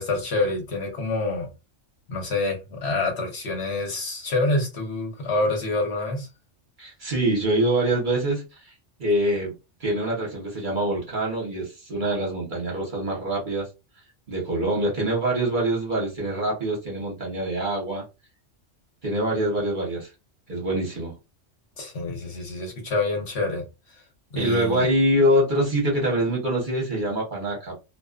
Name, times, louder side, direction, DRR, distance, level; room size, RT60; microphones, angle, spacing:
voice 1, 0.0-1.5 2.1-6.3 21.8-23.6 23.9-24.0 24.3-24.9, left 2 dB, 65° left, 1.1 m, -27 dB
voice 2, 6.8-8.7 9.0-9.5 9.8-13.7 14.3-18.0 19.0-20.1 20.5-21.1 24.4-27.8, right 1 dB, 45° right, 1.0 m, -24 dB
2.5 x 2.3 x 2.4 m
omnidirectional pair, 1.2 m